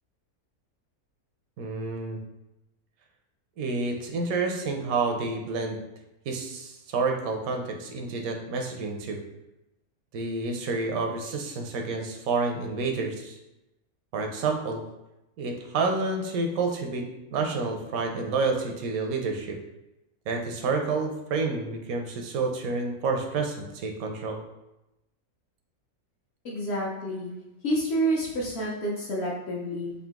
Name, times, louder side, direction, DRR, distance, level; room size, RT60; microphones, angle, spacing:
voice 1, 1.6-2.2 3.6-5.8 6.3-9.2 10.1-13.4 14.1-14.8 15.4-19.6 20.3-24.4, right 3 dB, 75° right, 3 dB, 1.0 m, -29 dB
voice 2, 26.4-27.3 27.6-29.9, right 1 dB, 55° left, -3 dB, 0.8 m, -28 dB
3.9 x 2.6 x 3.5 m, 0.93 s
omnidirectional pair, 1.6 m